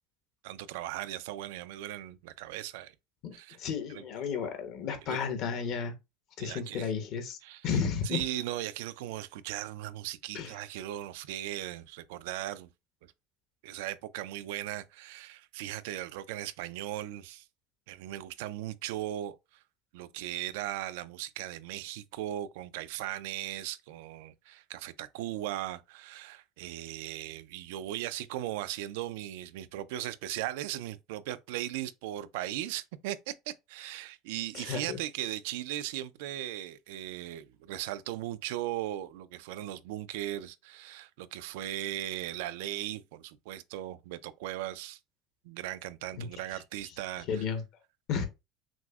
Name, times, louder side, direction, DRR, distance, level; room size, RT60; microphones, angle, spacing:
voice 1, 0.4-2.9 3.3-3.6 3.9-4.0 5.1-5.2 6.4-6.9 7.4-7.6 8.0-12.7 13.0-13.1 13.6-17.4 17.9-19.4 19.9-45.0 45.4-47.4, right 13 dB, 90° right, 0.3 m, -38 dB
voice 2, 3.2-6.0 6.4-7.4 7.6-8.2 10.3-10.5 34.5-35.0 46.1-46.6 47.3-47.6 48.1-48.3, left 6 dB, 55° left, 0.9 m, -33 dB
5.9 x 2.0 x 2.3 m
cardioid pair, 135°, 0 cm